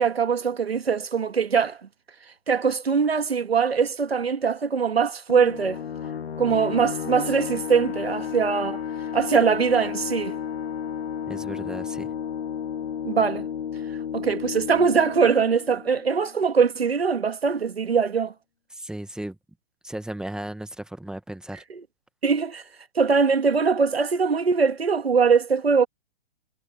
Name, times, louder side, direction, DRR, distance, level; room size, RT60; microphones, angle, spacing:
voice 1, 0.0-1.8 2.5-5.8 6.4-8.8 9.1-10.4 13.0-13.5 14.1-18.3 21.7-21.8 22.2-22.6 23.0-25.9, right 5 dB, 90° right, 1.9 m, -22 dB
sound 1, 5.3-16.6, left 8 dB, 80° left, 1.1 m, -32 dB
voice 2, 11.3-12.1 18.7-19.4 19.8-21.6, right 1 dB, ahead, 1.7 m, -35 dB
hypercardioid pair, 125°, 30 cm